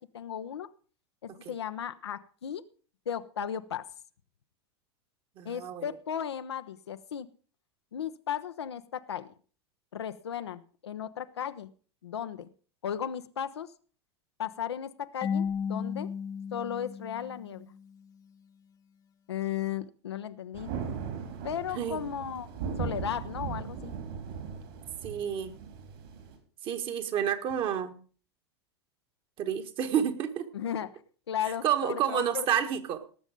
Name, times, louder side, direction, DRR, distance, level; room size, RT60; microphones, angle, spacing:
voice 1, 0.1-0.7 1.2-2.6 3.1-3.9 5.4-7.3 7.9-9.3 9.9-11.7 12.0-12.5 12.8-13.7 14.4-16.1 16.5-17.7 19.3-20.7 21.4-22.5 22.8-24.0 30.5-30.9 31.3-32.7, left 9 dB, 75° left, 9 dB, 0.7 m, -35 dB
voice 2, 5.4-5.8 21.7-22.0 25.0-25.5 26.6-28.0 29.4-30.5 31.6-33.0, right 9 dB, 40° right, 7 dB, 1.6 m, -29 dB
Marimba xylophone / Wood, 15.2-17.9, left 7 dB, 25° left, 0.7 m, -34 dB
Thunder, 20.5-26.4, right 6 dB, 60° right, 3.8 m, -38 dB
18.5 x 7.2 x 5.1 m, 0.40 s
figure-of-eight pair, 90°, 14 cm